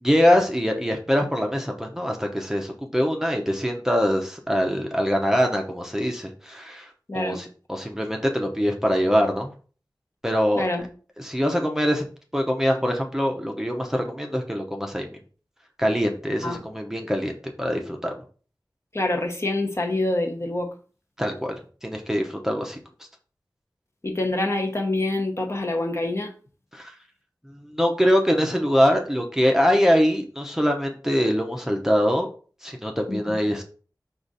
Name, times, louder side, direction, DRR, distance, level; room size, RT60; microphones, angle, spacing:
voice 1, 0.0-9.5 10.2-10.6 11.2-12.1 12.3-15.1 15.8-18.1 21.2-22.8 26.7-26.9 27.5-32.3 32.6-33.6, equal, 5° right, 2 dB, 0.7 m, -23 dB
voice 2, 7.1-7.4 10.6-10.9 16.4-16.6 18.9-20.7 24.0-26.3 33.1-33.2, left 2 dB, 35° left, 1 dB, 0.9 m, -26 dB
4.9 x 2.4 x 4.0 m, 0.39 s
wide cardioid pair, 60°, 7 cm